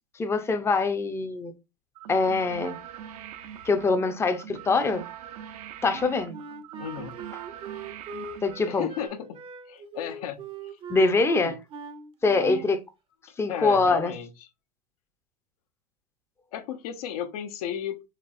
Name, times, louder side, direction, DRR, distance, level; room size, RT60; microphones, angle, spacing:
voice 1, 0.2-1.5 2.1-2.8 3.6-5.1 5.8-6.4 8.4-8.9 10.9-11.5 12.2-12.8 13.4-14.1, left 3 dB, 10° left, 0.6 m, -24 dB
sound 1, 2.0-9.1, right 10 dB, 65° right, 0.6 m, -43 dB
Wind instrument woodwind instrument, 5.9-12.7, right 4 dB, 30° right, 0.6 m, -41 dB
voice 2, 6.8-7.1 8.7-9.4 9.7-10.8 11.4-11.6 12.4-12.6 13.5-14.5 16.5-18.0, left 9 dB, 65° left, 0.8 m, -34 dB
4.2 x 3.0 x 2.5 m
hypercardioid pair, 105°, 20 cm